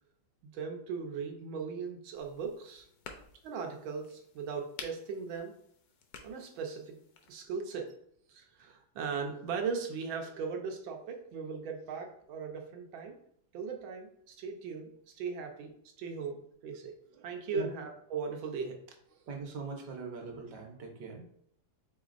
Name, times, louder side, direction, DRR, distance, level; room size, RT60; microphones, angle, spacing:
voice 1, 0.5-2.9 3.4-5.5 6.2-7.0 7.3-7.9 8.3-13.2 13.5-14.9 15.2-15.7 16.0-18.8, right 5 dB, 90° right, 2 dB, 1.5 m, -38 dB
sound 1, 2.1-7.5, left 6 dB, 70° left, 0.9 m, -52 dB
voice 2, 19.3-21.3, right 4 dB, 65° right, 2 dB, 1.4 m, -41 dB
5.1 x 4.0 x 2.5 m, 0.69 s
omnidirectional pair, 2.1 m